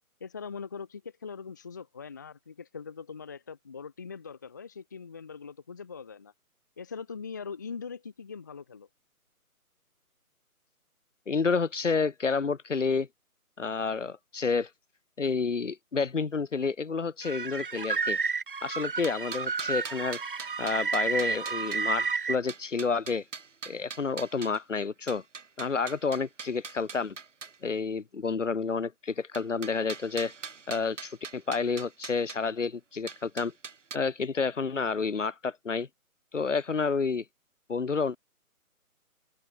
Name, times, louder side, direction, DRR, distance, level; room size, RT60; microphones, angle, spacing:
voice 1, 0.2-6.3 6.8-8.9, left 5 dB, 15° left, 0.9 m, -41 dB
voice 2, 11.3-13.1 13.6-14.7 15.2-18.2 18.6-20.2 20.6-23.2 23.7-25.2 25.6-27.1 27.6-30.3 30.7-33.5 33.9-35.9 36.3-37.2 37.7-38.2, left 5 dB, 55° left, 1.6 m, -29 dB
sound 1, 17.2-22.4, right 5 dB, 35° right, 1.0 m, -31 dB
sound 2, 18.8-21.8 22.5-24.6 25.1-27.6 29.3-32.4 33.1-34.0, right 5 dB, 55° right, 1.2 m, -42 dB
open air
figure-of-eight pair, 150°, 44 cm